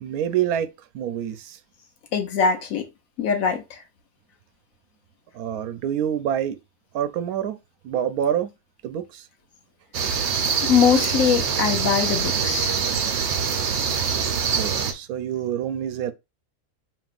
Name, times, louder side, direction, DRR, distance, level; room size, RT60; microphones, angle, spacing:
voice 1, 0.0-1.6 5.3-6.6 6.9-7.6 7.8-8.5 8.8-9.2 14.5-16.1, right 10 dB, 80° right, 1.1 m, -27 dB
voice 2, 2.1-2.9 3.2-3.8 10.7-12.7, left 7 dB, 75° left, 1.1 m, -22 dB
sound 1, 9.9-14.9, right 6 dB, 60° right, 0.8 m, -24 dB
5.3 x 2.8 x 2.4 m
omnidirectional pair, 1.5 m